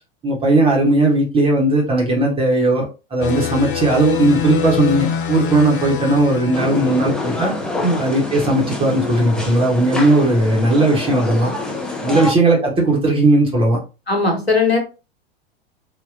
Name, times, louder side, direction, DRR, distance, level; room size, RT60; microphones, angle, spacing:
voice 1, 0.2-2.8 3.1-7.5 8.0-11.5 12.0-13.8, right 2 dB, 20° right, -2 dB, 0.8 m, -17 dB
sound 1, 3.2-7.6, left 8 dB, 60° left, 0.6 m, -25 dB
sound 2, 6.5-12.3, left 2 dB, 5° left, 0.4 m, -26 dB
voice 2, 14.1-14.8, left 3 dB, 90° left, 1 dB, 1.0 m, -19 dB
3.6 x 2.1 x 2.4 m, 0.30 s
figure-of-eight pair, 90°, 30 cm